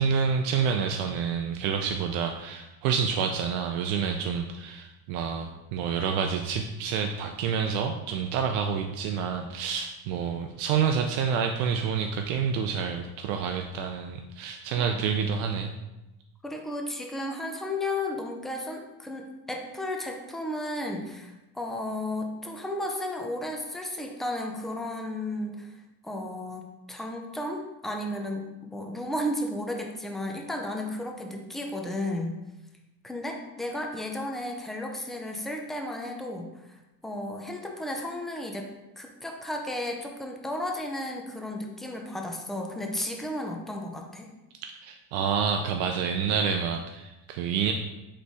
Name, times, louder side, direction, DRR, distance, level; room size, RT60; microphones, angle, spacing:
voice 1, 0.0-15.7 44.8-47.7, right 6 dB, 70° right, 4 dB, 0.5 m, -28 dB
voice 2, 16.4-25.7 26.0-32.3 33.0-38.7 39.0-44.3, left 1 dB, ahead, 2 dB, 0.4 m, -34 dB
3.9 x 3.2 x 3.4 m, 0.99 s
supercardioid pair, 90°, 47 cm